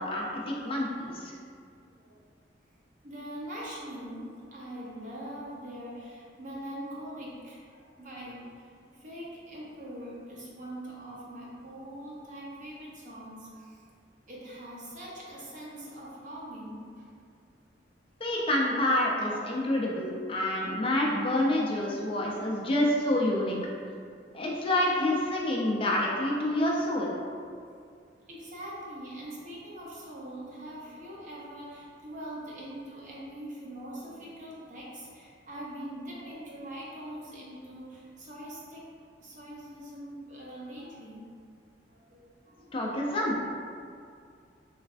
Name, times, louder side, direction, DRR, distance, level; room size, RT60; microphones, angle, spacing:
voice 1, 0.0-1.3 18.2-23.5 24.3-27.2 42.7-43.5, left 1 dB, 30° left, -2 dB, 0.4 m, -28 dB
voice 2, 1.8-2.2 3.0-13.8 14.3-17.3 20.5-20.8 22.3-22.9 28.3-38.9 39.2-41.3 41.9-42.7, right 1 dB, 45° right, -6 dB, 0.7 m, -43 dB
3.2 x 3.1 x 2.5 m, 2.3 s
head